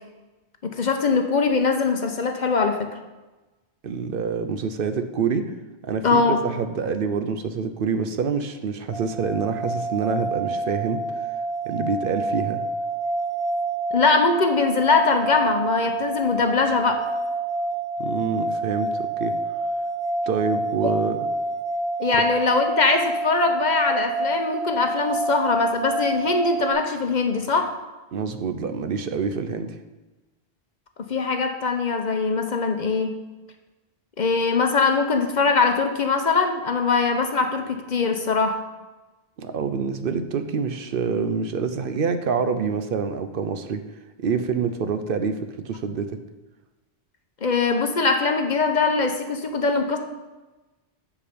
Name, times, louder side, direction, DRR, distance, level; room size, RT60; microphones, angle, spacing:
voice 1, 0.6-2.9 6.0-6.4 13.9-17.0 20.8-20.9 22.0-27.7 31.1-33.1 34.2-38.6 47.4-50.0, left 4 dB, 50° left, 5 dB, 0.8 m, -22 dB
voice 2, 3.8-5.5 5.8-11.2 11.6-12.6 18.0-19.4 20.3-21.3 22.1-22.2 28.1-29.8 39.4-43.8 44.2-46.2, right 5 dB, 65° right, 9 dB, 0.7 m, -26 dB
sound 1, 8.9-26.7, right 2 dB, 80° left, 1.3 m, -28 dB
7.2 x 7.0 x 5.1 m, 1.1 s
omnidirectional pair, 1.1 m